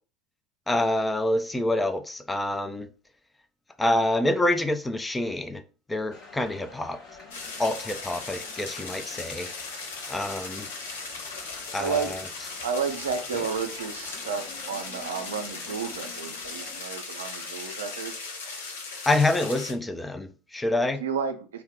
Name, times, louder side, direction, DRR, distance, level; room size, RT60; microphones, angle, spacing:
voice 1, 0.7-2.9 3.8-5.6 5.9-7.0 7.6-9.5 10.0-10.7 11.7-12.2 13.3-13.5 19.1-21.0, left 1 dB, 10° left, 0.3 m, -27 dB
sound 1, 6.1-16.8, left 4 dB, 45° left, 0.9 m, -49 dB
sound 2, 7.3-19.7, left 4 dB, 75° left, 0.6 m, -38 dB
voice 2, 11.8-12.1 12.6-18.3 21.0-21.6, right 6 dB, 75° right, 0.4 m, -32 dB
2.2 x 2.0 x 3.5 m
hypercardioid pair, 75°, 0 cm